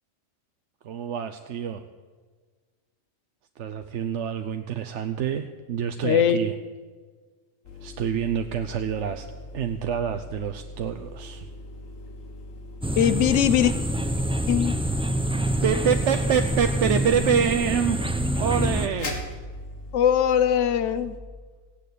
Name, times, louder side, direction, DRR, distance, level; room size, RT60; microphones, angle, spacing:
voice 1, 0.8-1.8 3.6-6.5 7.8-9.3 9.5-11.5 15.6-19.2, right 8 dB, 65° right, 8 dB, 1.0 m, -27 dB
voice 2, 6.0-6.4 13.0-13.7 14.5-14.7 19.9-21.1, left 9 dB, 70° left, 12 dB, 1.1 m, -21 dB
sound 1, 7.6-21.2, left 1 dB, 90° left, 2.3 m, -40 dB
sound 2, 12.8-18.9, right 1 dB, 5° right, 0.6 m, -26 dB
16.5 x 9.2 x 8.3 m, 1.5 s
omnidirectional pair, 1.3 m